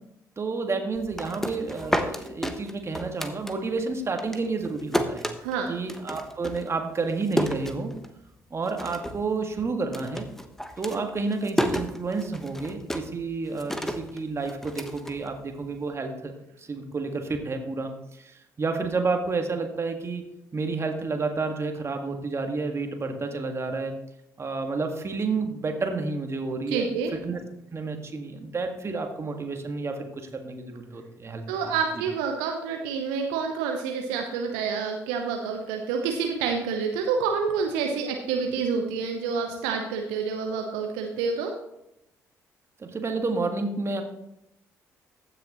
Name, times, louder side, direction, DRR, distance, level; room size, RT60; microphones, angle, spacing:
voice 1, 0.4-5.3 5.7-7.9 8.5-10.3 10.8-16.3 16.6-20.2 20.5-24.0 24.4-27.4 27.7-31.7 42.8-44.0, right 3 dB, 35° right, 4 dB, 1.7 m, -30 dB
sound 1, 0.9-3.9 4.2-8.3 8.6-9.3 9.5-15.8, equal, 5° left, 1.2 m, -31 dB
voice 2, 5.4-5.8 26.7-27.1 31.5-41.5, right 5 dB, 70° right, 3 dB, 0.9 m, -28 dB
15.0 x 6.7 x 3.0 m, 0.81 s
figure-of-eight pair, 45°, 8 cm